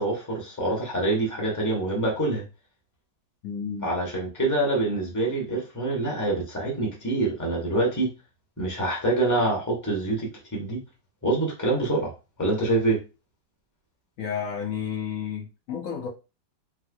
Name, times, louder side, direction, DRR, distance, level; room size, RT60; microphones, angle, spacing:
voice 1, 0.0-2.4 3.8-8.1 8.6-10.8 11.2-12.1 12.4-13.0, right 2 dB, 15° left, 0.8 m, -25 dB
voice 2, 3.4-4.0 14.2-16.1, left 7 dB, 85° left, 0.7 m, -32 dB
3.5 x 3.2 x 2.3 m
omnidirectional pair, 2.2 m